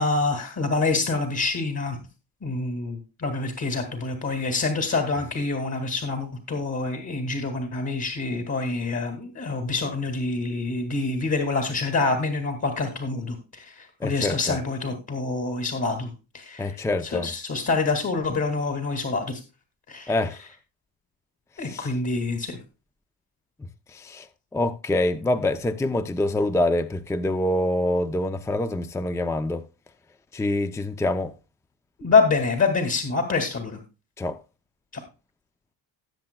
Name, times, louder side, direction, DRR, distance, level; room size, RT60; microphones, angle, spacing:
voice 1, 0.0-2.0 2.4-19.4 19.9-20.2 21.6-22.6 32.0-33.8 34.9-35.0, left 3 dB, 40° left, 2.2 m, -26 dB
voice 2, 14.0-14.6 16.6-17.3 20.1-20.4 21.6-21.9 23.9-24.3 24.5-29.6 30.3-31.3 34.2-34.4, left 1 dB, 5° left, 0.5 m, -25 dB
18.5 x 7.7 x 2.2 m
cardioid pair, 125°, 40 cm